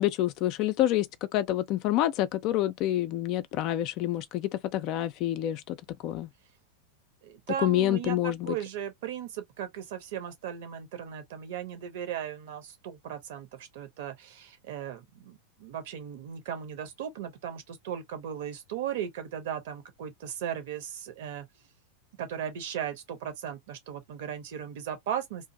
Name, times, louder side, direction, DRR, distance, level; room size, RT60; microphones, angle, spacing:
voice 1, 0.0-5.8 6.0-6.3 7.6-8.6, left 13 dB, 40° left, 0.3 m, -27 dB
voice 2, 7.2-21.5 22.2-25.5, right 9 dB, 55° right, 0.7 m, -37 dB
2.5 x 2.0 x 2.5 m
figure-of-eight pair, 90°, 0 cm